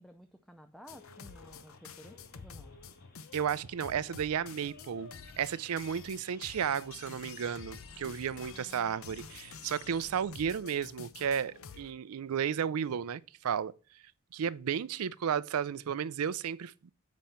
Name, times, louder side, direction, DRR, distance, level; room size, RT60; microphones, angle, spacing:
voice 1, 0.0-2.7 8.5-9.1 15.0-15.1, equal, ahead, 0.4 m, -54 dB
sound 1, 0.9-11.9, left 6 dB, 65° left, 0.7 m, -49 dB
sound 2, 0.9-10.1, left 2 dB, 40° left, 2.2 m, -63 dB
voice 2, 3.3-5.1 5.4-13.7 14.3-16.7, right 8 dB, 85° right, 0.4 m, -33 dB
7.4 x 5.2 x 4.3 m
head